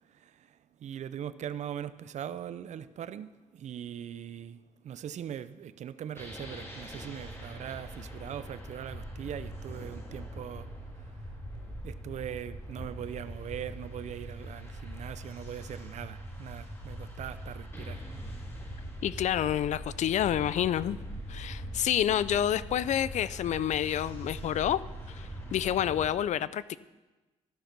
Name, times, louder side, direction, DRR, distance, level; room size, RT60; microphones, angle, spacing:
voice 1, 0.1-10.7 11.8-18.0, right 9 dB, 70° right, 0.5 m, -41 dB
sound 1, 6.2-26.1, equal, 20° left, 2.8 m, -42 dB
voice 2, 19.0-21.0 21.3-24.8 25.1-26.8, left 10 dB, 70° left, 0.4 m, -28 dB
14.0 x 5.9 x 6.7 m
cardioid pair, 80°, 12 cm